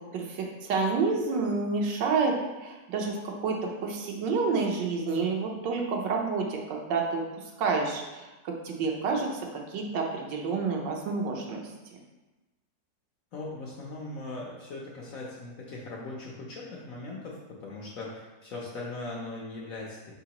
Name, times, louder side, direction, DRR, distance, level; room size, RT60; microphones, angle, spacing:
voice 1, 0.0-2.4 2.6-7.2 7.6-11.6, right 4 dB, 80° right, 0 dB, 1.4 m, -29 dB
voice 2, 13.3-20.1, left 2 dB, 65° left, -3 dB, 0.9 m, -39 dB
4.9 x 3.8 x 2.9 m, 1.1 s
omnidirectional pair, 2.0 m